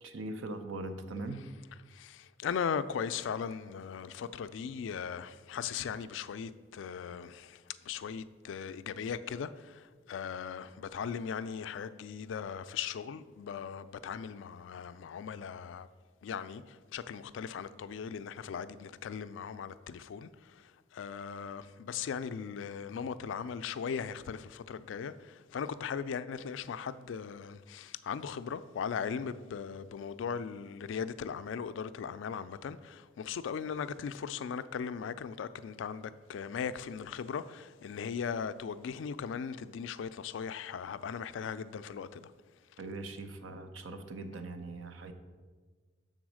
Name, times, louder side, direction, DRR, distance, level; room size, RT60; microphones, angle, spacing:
voice 1, 0.0-1.4 42.8-45.1, right 2 dB, 85° right, 0.6 m, -41 dB
voice 2, 2.0-7.6 7.9-9.5 10.1-15.9 16.2-16.6 16.9-20.3 20.9-25.1 25.5-42.2, left 7 dB, 75° left, 0.3 m, -38 dB
7.0 x 3.9 x 6.2 m
head